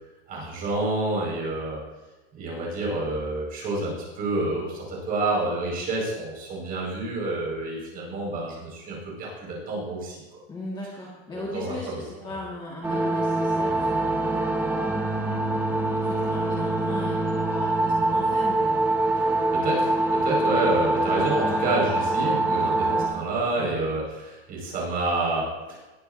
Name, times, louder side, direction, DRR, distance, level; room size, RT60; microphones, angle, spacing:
voice 1, 0.3-1.8 2.3-10.2 11.3-12.0 19.2-19.3 19.5-25.8, right 2 dB, 25° right, -3 dB, 5.1 m, -28 dB
voice 2, 10.5-15.0 15.5-18.8 23.5-23.8, left 2 dB, 15° left, -4 dB, 1.7 m, -38 dB
sound 1, 12.8-23.1, right 2 dB, 5° right, 1.5 m, -24 dB
19.0 x 11.5 x 2.6 m, 1.1 s
supercardioid pair, 175°, 33 cm